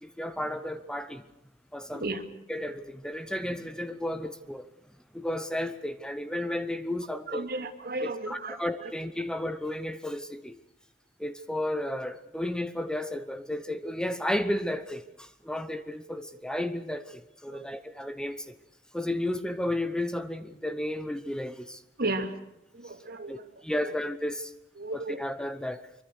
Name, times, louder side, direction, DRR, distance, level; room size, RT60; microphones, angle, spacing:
voice 1, 0.0-1.2 1.7-2.0 2.5-4.7 5.1-7.5 8.0-10.6 11.2-18.6 18.9-21.8 23.3-23.4 23.6-24.5 25.2-25.9, left 1 dB, 5° left, 0.9 m, -33 dB
voice 2, 1.9-2.2 7.1-8.9 17.5-17.7 22.0-22.3 22.7-23.5 23.8-23.9 24.8-25.2, right 2 dB, 55° right, 2.4 m, -34 dB
24.0 x 23.5 x 6.5 m
head